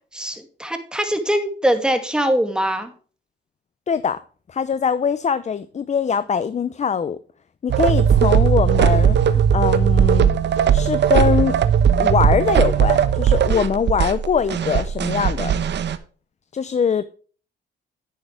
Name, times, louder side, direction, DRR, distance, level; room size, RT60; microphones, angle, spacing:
voice 1, 0.1-2.9, right 1 dB, 5° right, 2.3 m, -22 dB
voice 2, 3.9-4.2 4.5-7.2 7.6-10.3 10.7-11.5 12.0-15.5 16.5-17.0, left 6 dB, 35° left, 0.7 m, -22 dB
sound 1, 7.7-16.0, right 8 dB, 60° right, 1.1 m, -18 dB
10.5 x 8.8 x 3.4 m
cardioid pair, 90°, 20 cm